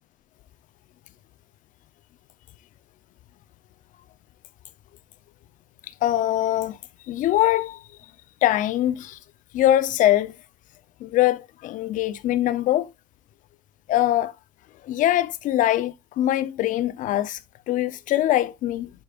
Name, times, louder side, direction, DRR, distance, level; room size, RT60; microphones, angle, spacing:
voice 1, 6.0-6.8 7.1-7.8 8.4-9.2 9.5-10.3 11.0-12.9 13.9-14.3 14.8-17.4 17.7-18.9, left 13 dB, 65° left, 0.8 m, -22 dB
10.0 x 5.2 x 2.5 m
cardioid pair, 110°, 14 cm